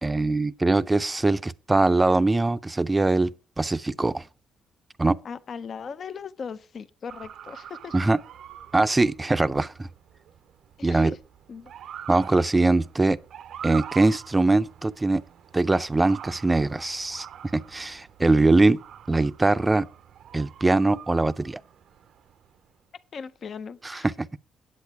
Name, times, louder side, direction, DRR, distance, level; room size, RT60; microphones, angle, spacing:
voice 1, 0.0-4.3 5.0-5.2 7.9-8.2 8.7-9.9 10.8-11.2 12.1-13.2 13.6-15.2 15.5-17.3 17.5-18.8 19.1-19.9 20.3-21.6 23.8-24.4, right 2 dB, 20° right, 0.5 m, -22 dB
voice 2, 5.2-7.9 10.8-11.2 11.5-11.7 23.1-24.1, left 6 dB, 50° left, 0.5 m, -38 dB
Motor vehicle (road) / Siren, 7.1-22.7, right 9 dB, 70° right, 0.5 m, -45 dB
8.4 x 8.0 x 4.6 m
cardioid pair, 90°, 0 cm